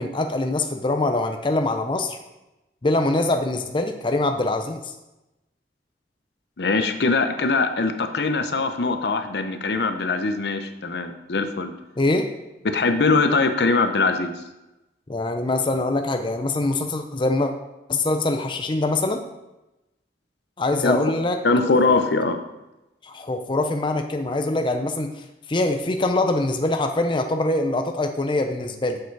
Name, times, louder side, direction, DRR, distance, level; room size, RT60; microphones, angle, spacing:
voice 1, 0.0-2.2 2.8-4.9 12.0-12.3 15.1-17.5 17.9-19.2 20.6-21.4 21.7-22.0 23.0-25.1 25.5-29.0, left 2 dB, 30° left, 5 dB, 0.6 m, -23 dB
voice 2, 6.6-11.7 12.6-14.3 20.8-21.0 21.4-22.4, left 3 dB, 70° left, 8 dB, 0.7 m, -22 dB
7.2 x 6.7 x 4.7 m, 0.97 s
head